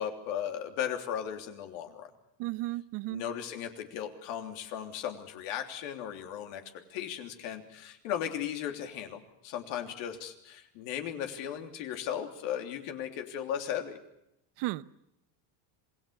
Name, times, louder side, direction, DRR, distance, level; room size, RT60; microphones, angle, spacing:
voice 1, 0.0-2.1 3.1-6.6 6.9-14.0, left 9 dB, 75° left, 5 dB, 3.3 m, -36 dB
voice 2, 2.4-3.2 14.6-14.8, right 18 dB, 65° right, 17 dB, 1.0 m, -34 dB
27.0 x 19.5 x 6.9 m, 0.82 s
cardioid pair, 140°, 47 cm